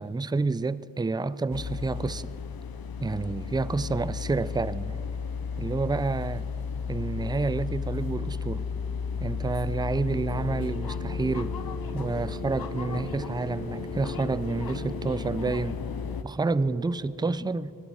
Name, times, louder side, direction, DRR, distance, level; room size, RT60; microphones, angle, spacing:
voice 1, 0.0-2.3 3.0-5.0 5.6-6.5 6.9-8.7 9.2-11.6 11.9-15.8 16.2-17.7, right 3 dB, 15° right, 0.3 m, -29 dB
sound 1, 1.5-16.2, left 6 dB, 85° left, 0.6 m, -34 dB
sound 2, 7.2-9.2 10.1-15.2 16.5-17.0, right 1 dB, 25° left, 1.6 m, -43 dB
20.0 x 12.0 x 4.6 m
wide cardioid pair, 65°, 35 cm